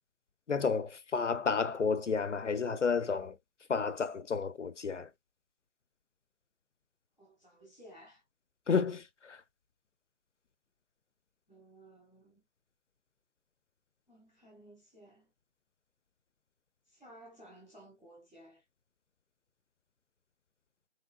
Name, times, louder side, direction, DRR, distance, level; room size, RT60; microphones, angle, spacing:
voice 1, 0.5-3.3 3.7-5.1 8.7-9.4, left 5 dB, 70° left, 0.6 m, -31 dB
voice 2, 7.2-8.2 11.5-12.4 14.1-15.3 16.9-18.6, right 1 dB, ahead, 0.7 m, -56 dB
3.2 x 2.8 x 2.3 m
figure-of-eight pair, 160°, 38 cm